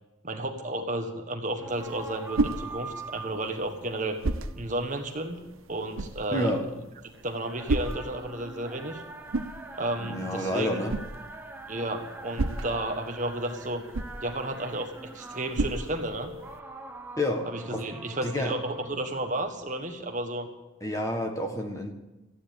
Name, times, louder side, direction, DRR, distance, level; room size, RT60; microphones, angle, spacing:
voice 1, 0.2-4.2 4.6-5.4 5.7-6.5 7.2-9.0 9.8-10.8 11.7-13.8 14.2-16.3 17.4-20.5, right 1 dB, 40° right, 4 dB, 1.5 m, -32 dB
sound 1, 1.6-20.2, right 2 dB, 10° right, 0.9 m, -45 dB
sound 2, 1.7-16.6, right 2 dB, 90° right, 0.8 m, -35 dB
voice 2, 6.3-6.6 10.0-11.0 17.2-17.9 18.2-18.5 20.8-21.9, left 1 dB, 15° left, 3 dB, 1.5 m, -29 dB
15.0 x 10.0 x 8.5 m, 1.0 s
head